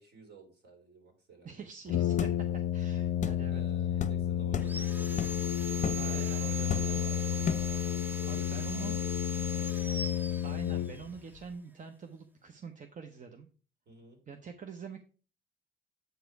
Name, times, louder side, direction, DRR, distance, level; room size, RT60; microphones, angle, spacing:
voice 1, 0.0-1.6 3.5-7.4 8.1-9.2 9.5-9.9 13.9-14.2, right 3 dB, 55° right, 3 dB, 3.1 m, -53 dB
voice 2, 1.4-3.6 3.9-4.0 5.9-7.0 8.3-9.0 10.4-13.5 14.3-15.0, right 6 dB, 40° right, 6 dB, 0.8 m, -45 dB
Brass instrument, 1.9-11.4, left 11 dB, 75° left, 0.4 m, -31 dB
sound 1, 2.2-2.4 3.2-3.4 4.0-4.2 4.5-4.8 5.2-5.4 5.8-6.1 6.7-7.0 7.4-7.7, left 6 dB, 40° left, 0.7 m, -34 dB
Sawing, 4.6-11.1, right 3 dB, 10° right, 0.6 m, -41 dB
7.9 x 4.9 x 4.7 m, 0.38 s
cardioid pair, 90°, 20 cm